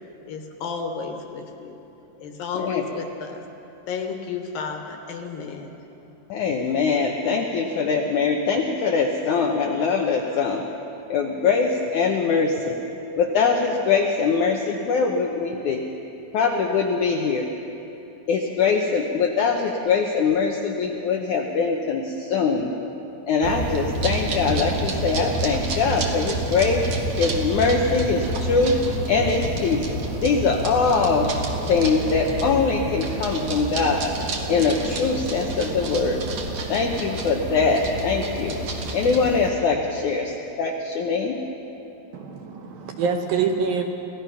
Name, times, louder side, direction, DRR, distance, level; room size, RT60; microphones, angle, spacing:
voice 1, 0.3-1.8 2.2-3.4 3.9-5.7, left 5 dB, 65° left, 3 dB, 2.7 m, -32 dB
voice 2, 6.3-10.6 11.1-12.8 13.2-15.8 16.3-17.5 18.3-22.7 23.3-26.8 27.2-28.8 29.1-29.9 30.2-31.3 31.7-34.1 34.5-36.2 36.7-38.5 38.9-41.4, left 5 dB, 90° left, 2 dB, 1.7 m, -22 dB
sound 1, 23.4-39.5, right 2 dB, 55° right, 1.8 m, -29 dB
voice 3, 42.1-43.8, right 5 dB, 70° right, 4 dB, 2.4 m, -25 dB
27.5 x 16.5 x 5.7 m, 3.0 s
omnidirectional pair, 4.9 m